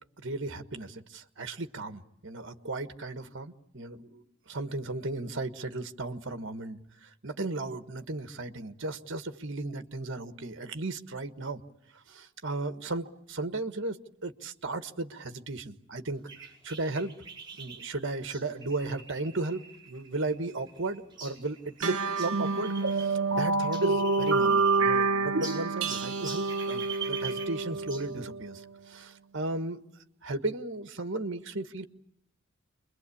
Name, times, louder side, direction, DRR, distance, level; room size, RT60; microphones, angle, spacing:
voice 1, 0.2-11.6 12.1-16.2 16.6-17.1 17.6-28.6 28.9-29.8 30.2-31.8, right 2 dB, 60° right, 8 dB, 1.5 m, -35 dB
sound 1, 16.3-23.1 23.4-25.0 25.4-28.1, right 5 dB, 20° right, 5.3 m, -44 dB
sound 2, 21.8-28.7, right 3 dB, 75° right, 1.1 m, -28 dB
29.0 x 22.5 x 8.6 m, 0.80 s
head